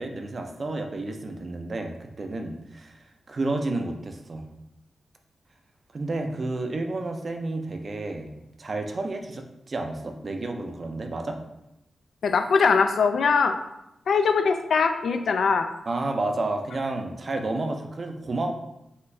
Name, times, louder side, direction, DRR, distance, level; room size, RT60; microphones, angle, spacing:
voice 1, 0.0-3.0 3.3-4.5 5.9-8.3 8.6-11.4 15.9-18.5, right 2 dB, 45° right, 4 dB, 0.5 m, -31 dB
voice 2, 12.2-13.5 14.1-15.7, left 5 dB, 75° left, 7 dB, 0.4 m, -21 dB
5.6 x 2.6 x 3.2 m, 0.88 s
wide cardioid pair, 100°, 0 cm